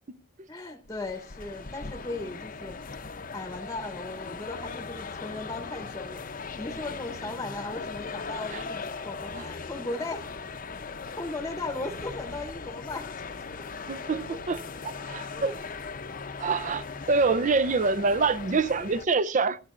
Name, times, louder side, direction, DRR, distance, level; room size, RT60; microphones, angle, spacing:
voice 1, 0.5-2.8 3.3-10.2 11.2-13.1 13.6-13.7 14.0-14.4 15.3-15.6, left 2 dB, 15° left, 0.9 m, -37 dB
sound 1, 0.8-19.1, left 4 dB, 45° left, 0.7 m, -39 dB
voice 2, 13.9-15.5 16.4-19.6, right 4 dB, 40° right, 0.5 m, -26 dB
23.0 x 9.2 x 2.5 m
head